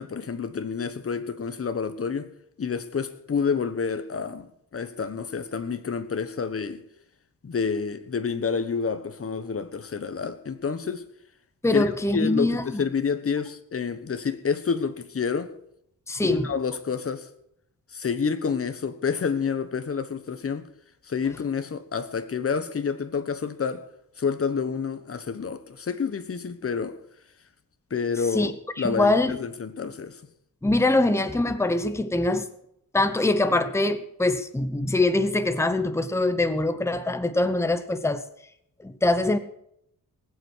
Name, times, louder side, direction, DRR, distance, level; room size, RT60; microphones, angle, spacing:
voice 1, 0.0-2.3 2.6-6.8 7.4-11.1 11.7-15.5 16.2-17.3 17.9-20.7 21.0-23.9 24.2-27.0 27.9-28.5 28.8-30.2, left 5 dB, 40° left, 1.2 m, -28 dB
voice 2, 11.6-12.8 16.1-16.5 28.3-28.5 28.8-29.4 30.6-32.5 32.9-38.2 38.8-39.4, left 2 dB, 10° left, 0.9 m, -23 dB
19.5 x 8.2 x 6.2 m
wide cardioid pair, 120°, 34 cm